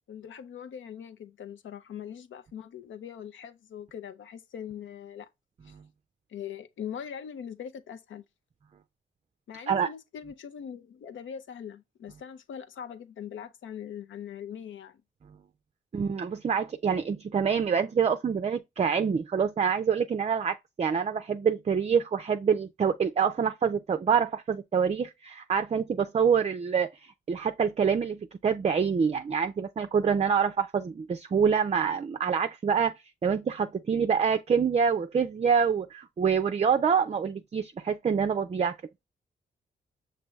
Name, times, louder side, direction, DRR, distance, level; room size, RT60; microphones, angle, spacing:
voice 1, 0.1-5.3 5.6-5.7 6.3-8.2 9.5-15.0, left 8 dB, 75° left, 0.6 m, -41 dB
voice 2, 15.9-32.9 33.2-38.8, right 6 dB, 30° right, 0.4 m, -26 dB
6.0 x 2.6 x 3.2 m
supercardioid pair, 50°, 20 cm